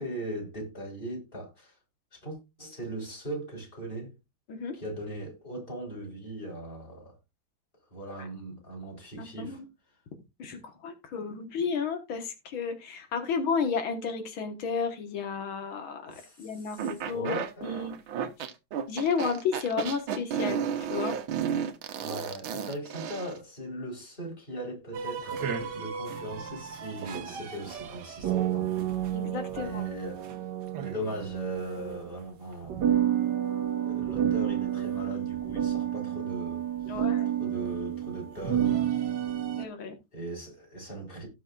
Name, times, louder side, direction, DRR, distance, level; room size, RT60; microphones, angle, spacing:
voice 1, 0.0-1.8 2.1-4.2 4.7-7.2 7.9-9.6 16.1-17.9 22.0-28.7 29.5-30.3 30.8-32.8 33.8-37.1 37.4-38.9 40.1-41.3, right 1 dB, 25° left, 4.2 m, -39 dB
voice 2, 9.2-9.6 10.4-17.4 17.6-17.9 18.9-20.6 20.9-21.2 29.1-29.9 36.9-37.3 39.6-40.0, left 5 dB, 90° left, 2.3 m, -32 dB
sound 1, 16.8-23.4, right 8 dB, 85° right, 1.8 m, -32 dB
sound 2, 24.9-32.1 32.6-39.7, right 10 dB, 60° right, 1.6 m, -30 dB
17.5 x 6.3 x 2.5 m
omnidirectional pair, 2.2 m